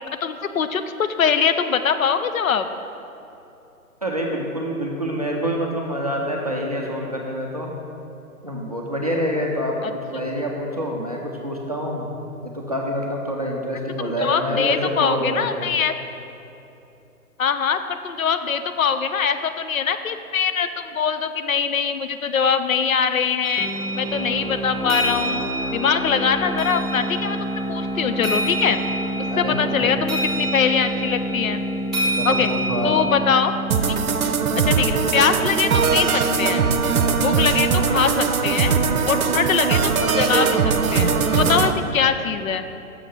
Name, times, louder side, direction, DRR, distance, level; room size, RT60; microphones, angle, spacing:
voice 1, 0.2-2.7 9.8-9.9 14.0-16.0 17.4-23.7 24.0-25.4 25.7-27.4 27.7-28.8 29.2-31.6 32.2-32.5 32.8-33.5 33.9-34.0 34.6-36.7 37.2-38.7 39.1-42.7, left 6 dB, 65° left, 9 dB, 0.5 m, -22 dB
voice 2, 4.0-7.7 8.4-9.8 10.1-12.0 12.4-15.7 29.3-30.0 32.2-33.0, equal, 30° right, -2 dB, 0.4 m, -26 dB
sound 1, 23.4-33.1, right 1 dB, ahead, 0.9 m, -30 dB
sound 2, 23.6-35.0, equal, 35° left, 1.4 m, -29 dB
sound 3, 33.7-41.7, right 5 dB, 70° right, 0.6 m, -20 dB
6.4 x 5.2 x 5.8 m, 2.8 s
figure-of-eight pair, 135°, 44 cm